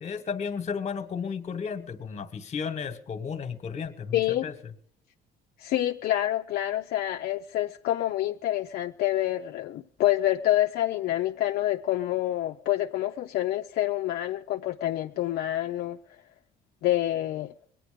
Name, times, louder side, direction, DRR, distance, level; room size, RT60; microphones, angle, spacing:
voice 1, 0.0-4.5, left 6 dB, 40° left, 1.3 m, -33 dB
voice 2, 4.1-4.4 5.6-16.0 16.8-17.5, left 14 dB, 65° left, 0.5 m, -27 dB
22.0 x 9.2 x 5.0 m
cardioid pair, 110°, 17 cm